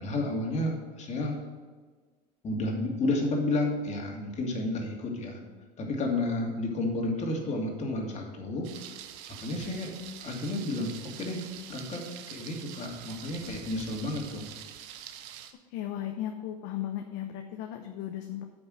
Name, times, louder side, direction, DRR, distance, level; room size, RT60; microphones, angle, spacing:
voice 1, 0.0-1.4 2.4-5.4 5.8-8.9 9.4-9.9 10.2-12.0 12.3-14.4, left 2 dB, 35° left, 0 dB, 2.7 m, -31 dB
Thunder, 8.6-15.5, right 10 dB, 60° right, 0.9 m, -45 dB
voice 2, 15.7-18.4, left 11 dB, 60° left, 5 dB, 0.9 m, -36 dB
8.8 x 6.2 x 6.5 m, 1.4 s
hypercardioid pair, 95°, 21 cm